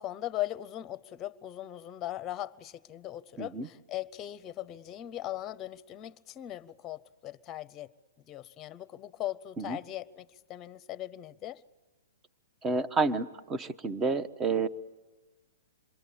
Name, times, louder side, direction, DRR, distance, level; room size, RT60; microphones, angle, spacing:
voice 1, 0.0-7.9 8.3-11.6, left 14 dB, 25° left, 0.9 m, -39 dB
voice 2, 12.6-14.7, right 4 dB, 20° right, 1.1 m, -29 dB
27.5 x 22.5 x 8.6 m
hypercardioid pair, 120°, 0 cm